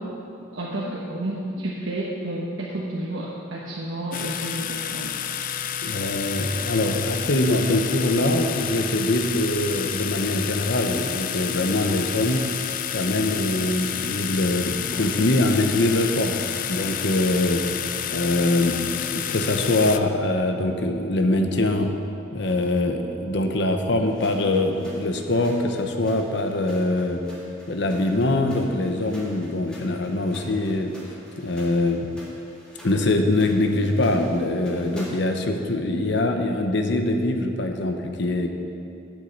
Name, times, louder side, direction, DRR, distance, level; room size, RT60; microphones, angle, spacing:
voice 1, 0.5-5.2, right 1 dB, 85° right, -5 dB, 1.1 m, -31 dB
sound 1, 4.1-20.0, left 9 dB, 45° left, 0.4 m, -30 dB
voice 2, 5.8-12.4 12.9-17.7 18.1-21.9 22.3-27.2 27.7-30.9 31.4-32.1 32.8-38.5, left 2 dB, 60° left, 5 dB, 0.9 m, -23 dB
sound 2, 24.1-35.4, equal, 5° left, 1.7 m, -47 dB
8.3 x 6.8 x 7.9 m, 2.7 s
head